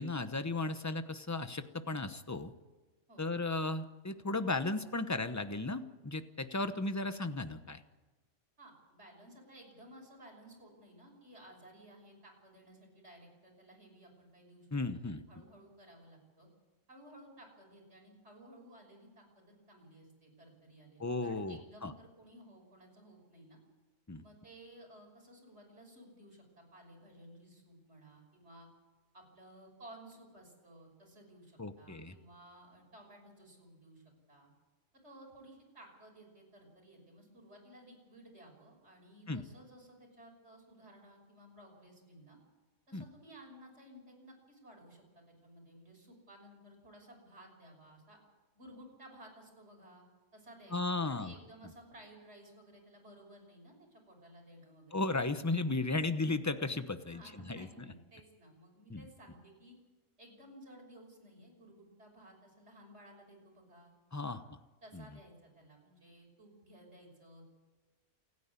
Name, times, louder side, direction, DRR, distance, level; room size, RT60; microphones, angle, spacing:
voice 1, 0.0-2.5 3.2-7.8 14.7-15.2 21.0-21.9 24.1-24.2 31.6-32.2 39.3-39.4 42.9-43.0 50.7-51.3 54.9-57.7 58.9-59.0 64.1-64.4 64.9-65.1, left 2 dB, 15° left, 10 dB, 0.8 m, -35 dB
voice 2, 8.6-14.7 15.0-16.5 16.9-23.6 24.2-28.7 29.1-34.0 34.3-34.5 35.0-42.4 42.9-48.2 48.5-50.0 50.3-55.0 56.0-56.1 57.1-59.8 60.2-63.9 64.2-64.4 64.8-67.4, right 1 dB, 60° right, 1 dB, 6.4 m, -56 dB
28.5 x 9.6 x 9.7 m, 1.2 s
omnidirectional pair, 1.3 m